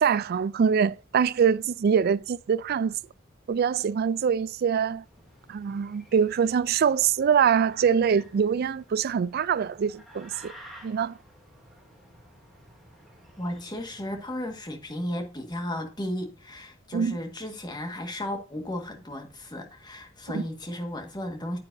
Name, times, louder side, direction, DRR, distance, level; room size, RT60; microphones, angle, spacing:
voice 1, 0.0-3.0 3.5-5.0 5.5-10.5 10.8-11.2 16.9-17.2 20.3-20.4, right 7 dB, 50° right, 0.3 m, -24 dB
sound 1, 5.0-14.7, right 1 dB, ahead, 2.6 m, -53 dB
voice 2, 13.4-21.6, left 1 dB, 20° left, 1.7 m, -34 dB
9.2 x 8.6 x 2.7 m
head